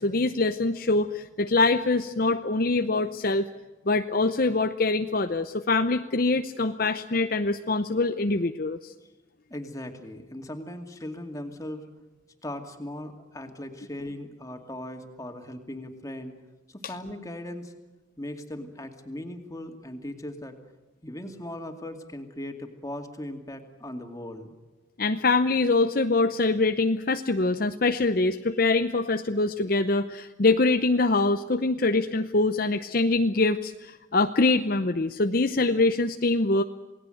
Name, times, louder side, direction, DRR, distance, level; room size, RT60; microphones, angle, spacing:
voice 1, 0.0-3.5 3.9-8.9 25.0-36.6, left 3 dB, 50° left, 8 dB, 0.8 m, -24 dB
voice 2, 9.5-11.8 12.4-16.3 16.7-17.7 18.2-20.6 21.0-24.5, left 1 dB, 15° left, 5 dB, 2.5 m, -38 dB
28.0 x 18.5 x 7.9 m, 1.1 s
head